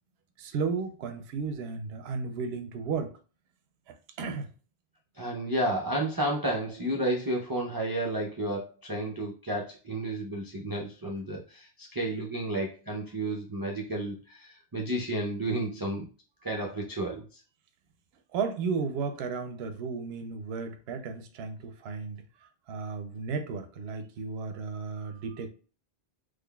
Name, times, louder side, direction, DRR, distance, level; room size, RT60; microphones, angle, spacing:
voice 1, 0.4-3.1 3.9-4.5 18.3-25.5, right 5 dB, 70° right, 0.8 m, -34 dB
voice 2, 5.2-16.1 16.4-17.4, right 1 dB, 30° right, 0.4 m, -32 dB
3.7 x 3.2 x 2.3 m
omnidirectional pair, 1.1 m